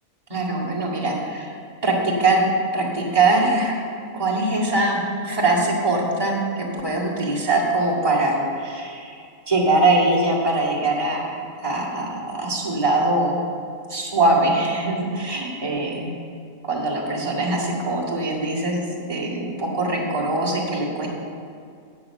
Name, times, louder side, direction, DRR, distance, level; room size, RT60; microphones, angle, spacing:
voice 1, 0.3-1.5 1.8-2.4 2.7-3.7 4.1-13.4 13.9-16.1 16.6-21.1, right 2 dB, 25° right, -6 dB, 2.1 m, -22 dB
9.4 x 7.0 x 5.9 m, 2.3 s
omnidirectional pair, 1.5 m